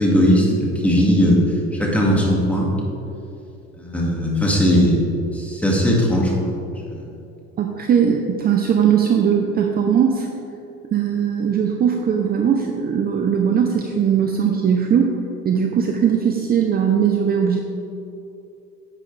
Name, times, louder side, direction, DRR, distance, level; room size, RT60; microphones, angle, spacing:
voice 1, 0.0-1.4 1.7-2.7 3.8-5.1 5.3-6.5 6.9-7.1, equal, 5° left, -3 dB, 1.9 m, -18 dB
voice 2, 7.6-10.3 10.9-15.1 15.4-17.6, right 7 dB, 30° right, 2 dB, 0.6 m, -19 dB
11.0 x 8.1 x 3.3 m, 2.7 s
cardioid pair, 125°, 29 cm